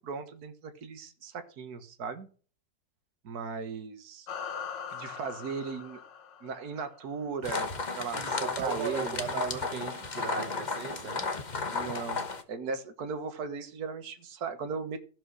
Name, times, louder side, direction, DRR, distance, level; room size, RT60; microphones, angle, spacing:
voice 1, 0.0-2.3 3.2-4.3 4.9-6.0 6.4-9.2 11.7-15.0, right 5 dB, 60° right, 1.8 m, -37 dB
sound 1, 4.3-7.0, left 7 dB, 90° left, 1.8 m, -41 dB
sound 2, 7.4-12.4, left 4 dB, 30° left, 1.0 m, -34 dB
voice 2, 8.1-11.4, right 6 dB, 80° right, 1.8 m, -37 dB
14.5 x 5.6 x 6.3 m
omnidirectional pair, 1.9 m